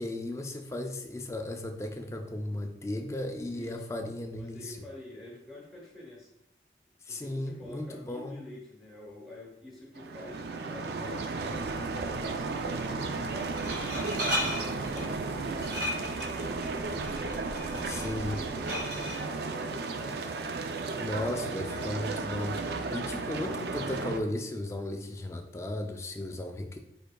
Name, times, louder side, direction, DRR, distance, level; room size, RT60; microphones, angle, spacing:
voice 1, 0.0-4.8 7.1-8.4 17.8-18.4 21.0-26.8, left 1 dB, 15° left, 5 dB, 0.3 m, -35 dB
voice 2, 3.5-3.8 4.3-6.3 7.1-13.0 13.4-13.8 14.4-17.3 17.8-20.2, left 2 dB, ahead, -4 dB, 0.9 m, -48 dB
sound 1, 9.9-24.2, right 3 dB, 60° right, 0.4 m, -34 dB
Glass, 11.5-19.2, equal, 85° right, 1.7 m, -37 dB
5.2 x 4.4 x 2.2 m, 0.80 s
head